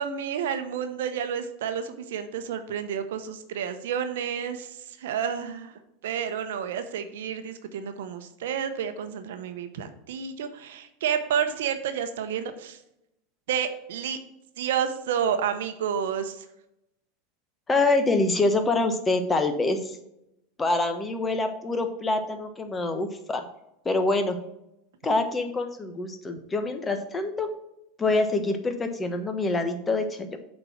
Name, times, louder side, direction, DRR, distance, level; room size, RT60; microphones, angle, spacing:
voice 1, 0.0-5.7 6.0-12.8 13.5-14.2 14.6-16.4, right 8 dB, 75° right, 9 dB, 0.8 m, -30 dB
voice 2, 17.7-20.0 20.6-23.4 23.8-24.4 25.0-27.5 28.0-30.4, left 2 dB, 20° left, 7 dB, 1.2 m, -25 dB
7.7 x 4.4 x 5.9 m, 0.84 s
hypercardioid pair, 90°, 0 cm